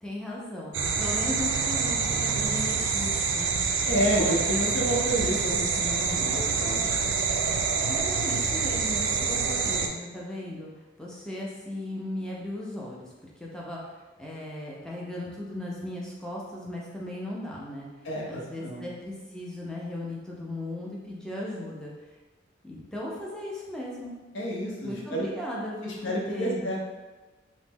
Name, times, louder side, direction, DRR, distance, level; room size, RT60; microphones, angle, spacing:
voice 1, 0.0-3.6 4.1-4.6 7.8-10.7 11.0-13.1 13.4-17.9 18.2-21.9 22.6-24.1 24.8-26.7, left 1 dB, 5° left, -5 dB, 0.4 m, -37 dB
sound 1, 0.7-9.9, right 5 dB, 75° right, 0.3 m, -27 dB
voice 2, 3.9-6.9 18.0-18.8 24.3-25.3 25.8-26.8, equal, 80° left, -2 dB, 0.7 m, -29 dB
3.0 x 2.0 x 3.4 m, 1.2 s
head